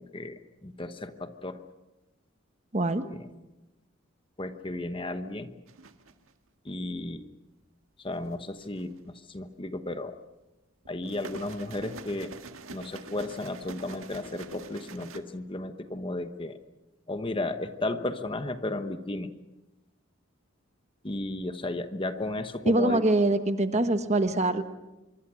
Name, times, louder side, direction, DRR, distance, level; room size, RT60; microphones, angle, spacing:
voice 1, 0.0-1.6 3.0-3.3 4.4-5.5 6.6-7.3 8.0-10.2 10.9-12.3 12.7-16.6 17.1-19.3 21.0-23.0, left 2 dB, 25° left, 9 dB, 1.0 m, -34 dB
voice 2, 2.7-3.0 22.7-24.6, right 2 dB, 35° right, 9 dB, 1.3 m, -24 dB
sound 1, 5.7-6.3 8.3-9.0 10.9-15.2, right 3 dB, 85° right, 1.7 m, -45 dB
25.5 x 23.5 x 6.3 m, 1.0 s
head